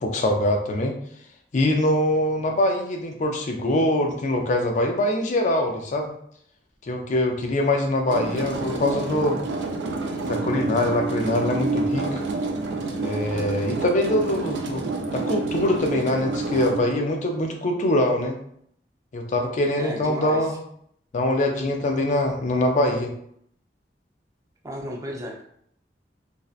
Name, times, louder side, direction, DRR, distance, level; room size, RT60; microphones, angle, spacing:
voice 1, 0.0-0.9 1.5-6.1 6.8-9.4 10.3-12.2 13.0-14.8 15.1-18.4 19.1-20.6 21.1-23.1, left 1 dB, 45° left, 3 dB, 0.4 m, -23 dB
sound 1, 8.1-16.8, right 3 dB, 80° right, 0.4 m, -28 dB
voice 2, 19.8-20.5 24.6-25.4, equal, 20° right, -1 dB, 0.5 m, -33 dB
2.6 x 2.0 x 2.4 m, 0.68 s
head